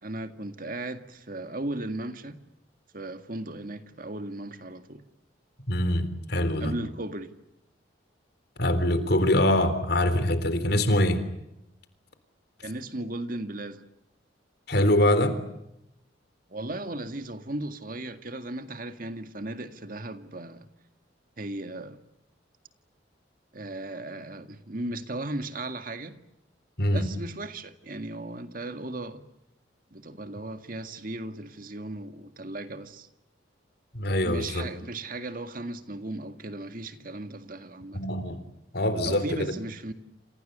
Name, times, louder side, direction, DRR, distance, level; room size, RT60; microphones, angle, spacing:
voice 1, 0.0-2.4 2.9-5.0 6.6-7.3 12.6-13.8 16.5-20.7 21.4-22.0 23.5-26.2 26.9-29.2 29.9-33.1 34.2-38.1 39.0-39.9, right 2 dB, 45° right, 2.0 m, -36 dB
voice 2, 5.7-6.7 8.6-11.2 14.7-15.4 26.8-27.0 33.9-34.7 37.9-38.4 38.7-39.5, left 1 dB, 55° left, 3.8 m, -24 dB
29.0 x 28.0 x 6.9 m
head